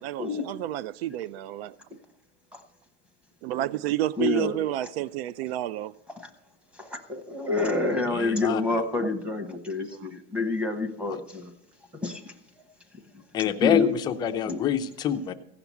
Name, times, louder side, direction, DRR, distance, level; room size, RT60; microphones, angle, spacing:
voice 1, 0.0-1.8 3.4-5.9 9.9-10.0, right 13 dB, 85° right, 0.5 m, -30 dB
voice 2, 4.2-4.6 6.2-6.3 6.8-11.5 12.0-12.2 13.4-13.9 14.5-14.6, left 3 dB, 5° right, 0.9 m, -28 dB
voice 3, 8.1-8.6 11.1-11.2 13.3-15.3, left 8 dB, 15° left, 0.4 m, -26 dB
16.0 x 5.9 x 8.3 m
supercardioid pair, 175°, 30 cm